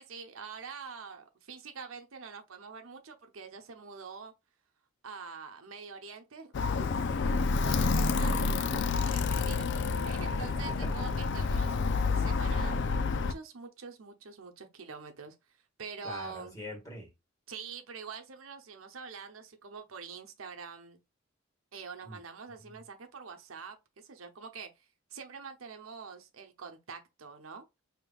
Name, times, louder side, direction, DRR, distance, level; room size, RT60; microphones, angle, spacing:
voice 1, 0.0-4.3 5.0-6.9 7.7-8.4 9.0-11.8 12.1-15.4 15.8-16.5 17.5-21.0 21.7-27.7, right 5 dB, 85° right, 0.8 m, -45 dB
Alarm, 6.5-13.3, left 4 dB, 60° left, 0.4 m, -29 dB
voice 2, 16.0-17.1 22.0-22.2 22.6-22.8, equal, 15° left, 1.7 m, -45 dB
5.1 x 2.9 x 2.3 m
head